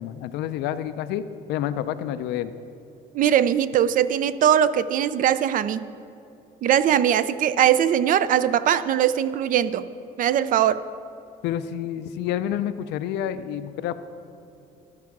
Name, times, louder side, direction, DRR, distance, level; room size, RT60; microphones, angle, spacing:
voice 1, 0.0-2.5 11.4-13.9, left 10 dB, 85° left, 12 dB, 0.5 m, -29 dB
voice 2, 3.1-5.8 6.6-9.9 10.2-10.8, right 10 dB, 55° right, 15 dB, 0.4 m, -21 dB
13.0 x 4.7 x 6.0 m, 2.6 s
cardioid pair, 110°, 17 cm